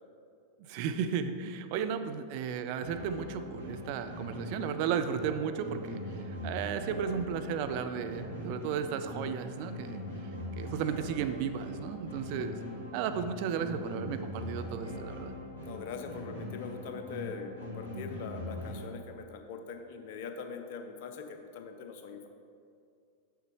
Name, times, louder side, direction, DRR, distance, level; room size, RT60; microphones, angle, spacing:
voice 1, 0.7-6.0 6.3-10.0 10.6-12.6 12.9-15.3, right 7 dB, 45° right, 9 dB, 0.4 m, -34 dB
sound 1, 2.8-18.8, left 1 dB, 90° right, 1.6 m, -41 dB
voice 2, 15.6-22.3, left 5 dB, 50° left, 5 dB, 0.6 m, -42 dB
7.2 x 6.7 x 3.1 m, 2.4 s
figure-of-eight pair, 90°, 0 cm